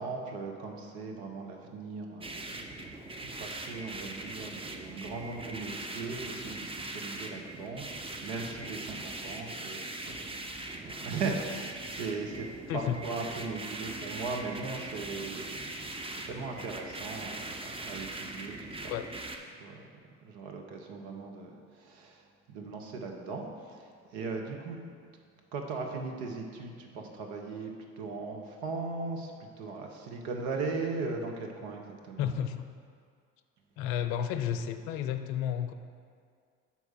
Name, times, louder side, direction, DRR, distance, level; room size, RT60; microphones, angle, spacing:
voice 1, 0.0-18.9 19.5-19.8 20.2-24.8 25.5-27.7 28.0-32.3, right 4 dB, 75° right, 2 dB, 0.9 m, -38 dB
sound 1, 2.2-19.4, right 2 dB, 15° right, 0.6 m, -41 dB
voice 2, 12.7-13.0 18.9-19.1 32.2-32.7 33.8-35.7, left 9 dB, 75° left, 9 dB, 0.5 m, -32 dB
5.9 x 4.6 x 5.6 m, 2.2 s
hypercardioid pair, 50°, 41 cm